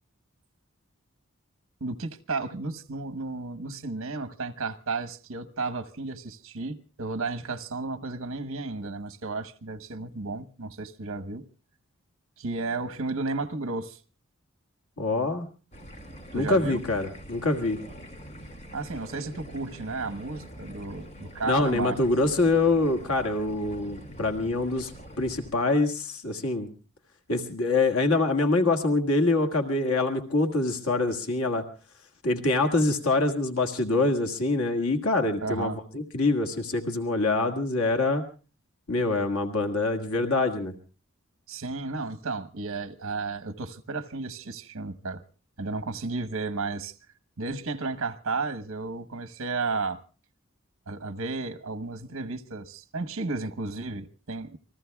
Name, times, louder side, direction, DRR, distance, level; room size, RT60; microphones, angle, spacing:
voice 1, 1.8-11.5 12.4-14.0 16.3-16.8 18.7-22.0 35.4-35.8 41.5-45.2 45.6-47.0 47.4-50.0 50.9-54.6, right 3 dB, 75° right, 1.1 m, -33 dB
voice 2, 15.0-15.5 16.3-17.8 21.5-24.9 25.2-26.7 27.3-31.6 32.2-38.2 38.9-40.7, left 2 dB, 85° left, 1.8 m, -25 dB
sound 1, 15.7-25.5, equal, 30° left, 2.3 m, -44 dB
28.0 x 20.5 x 2.3 m
head